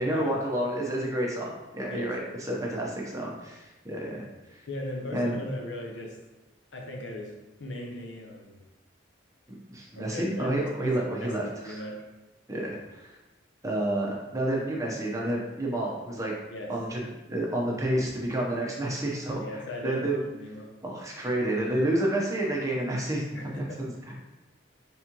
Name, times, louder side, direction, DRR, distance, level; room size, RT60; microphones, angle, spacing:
voice 1, 0.0-4.6 5.1-5.4 9.5-11.8 12.5-13.2 13.6-16.3 16.7-17.0 17.3-20.2 20.8-23.3 23.6-23.9, right 1 dB, 15° right, -2 dB, 0.7 m, -30 dB
voice 2, 4.7-6.2 6.7-7.3 7.6-8.6 10.0-12.0 16.5-16.7 19.4-20.7 23.3-23.8, left 1 dB, 80° left, 0 dB, 0.8 m, -38 dB
4.2 x 3.5 x 2.9 m, 1.1 s
head